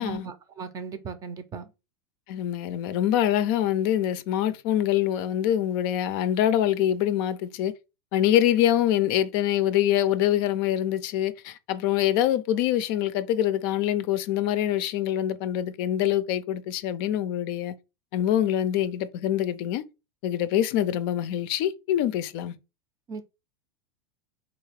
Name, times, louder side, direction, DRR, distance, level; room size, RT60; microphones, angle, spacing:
voice 1, 0.0-1.7 23.1-23.2, right 5 dB, 25° right, 0.5 m, -37 dB
voice 2, 2.3-7.7 8.1-17.7 18.1-19.8 20.2-22.5, left 11 dB, 55° left, 0.4 m, -25 dB
3.8 x 2.3 x 3.3 m
supercardioid pair, 120°, 14 cm